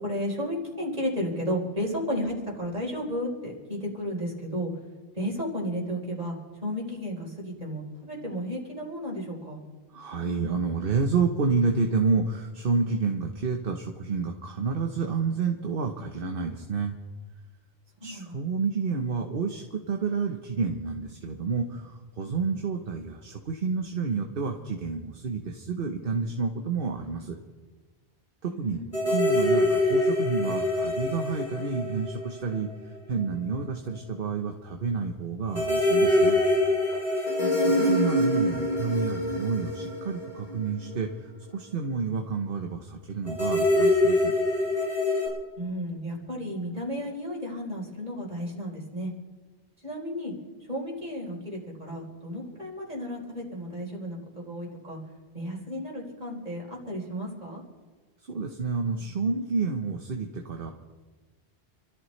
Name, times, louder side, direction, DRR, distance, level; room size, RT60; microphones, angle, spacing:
voice 1, 0.0-4.7 5.1-6.4 6.6-9.6 18.0-18.4 28.5-29.0 37.4-37.8 45.6-49.1 49.8-50.3 50.7-55.0 55.3-57.6, equal, 40° right, -3 dB, 4.1 m, -33 dB
voice 2, 9.9-16.9 18.0-27.4 28.4-28.8 29.1-32.7 33.1-36.4 37.7-44.3 58.3-60.7, right 5 dB, 55° right, 4 dB, 1.2 m, -29 dB
sound 1, 28.9-32.7 32.9-33.0 35.5-40.9 43.3-45.3, left 1 dB, 70° left, 6.3 m, -24 dB
28.5 x 14.0 x 3.2 m, 1.3 s
omnidirectional pair, 1.1 m